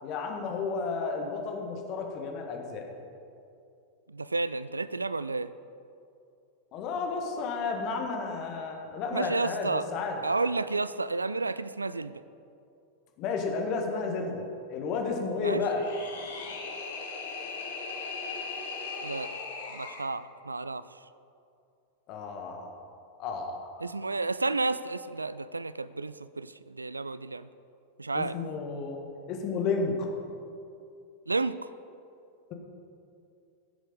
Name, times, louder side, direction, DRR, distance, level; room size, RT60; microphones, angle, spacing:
voice 1, 0.0-2.8 6.7-10.2 13.2-14.4 14.7-15.8 22.1-22.7 23.2-23.8 28.1-29.0 29.3-30.1, left 4 dB, 40° left, 2 dB, 1.6 m, -32 dB
voice 2, 4.1-5.5 9.1-9.9 10.2-12.2 15.4-15.6 19.0-19.3 19.7-20.9 23.8-27.5 28.0-28.4 31.3-31.7, right 3 dB, 80° right, 16 dB, 0.3 m, -31 dB
sound 1, 15.6-20.1, left 4 dB, 60° left, 1.7 m, -38 dB
15.5 x 7.1 x 5.3 m, 2.6 s
figure-of-eight pair, 90°, 0 cm